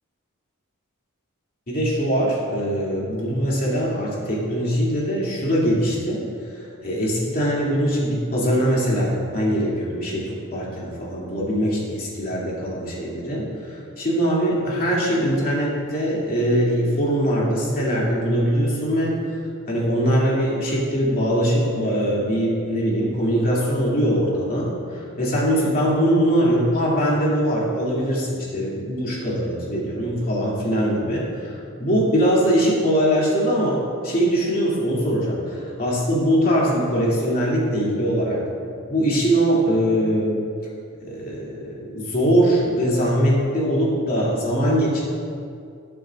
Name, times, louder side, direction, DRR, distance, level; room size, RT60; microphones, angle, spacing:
voice 1, 1.7-6.2 6.5-19.2 19.7-38.4 38.9-40.4 41.1-45.0, equal, 45° left, -6 dB, 2.7 m, -22 dB
19.0 x 7.3 x 2.5 m, 2.4 s
head